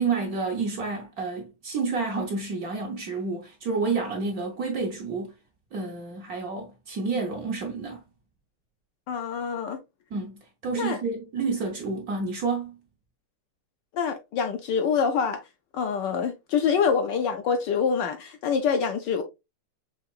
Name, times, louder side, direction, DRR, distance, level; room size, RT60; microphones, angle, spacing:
voice 1, 0.0-5.3 5.7-8.0 10.1-12.8, right 4 dB, 60° right, 1.1 m, -29 dB
voice 2, 9.1-9.8 10.8-11.0 13.9-15.4 15.7-19.2, left 6 dB, 70° left, 1.1 m, -25 dB
5.7 x 2.9 x 2.3 m
omnidirectional pair, 2.3 m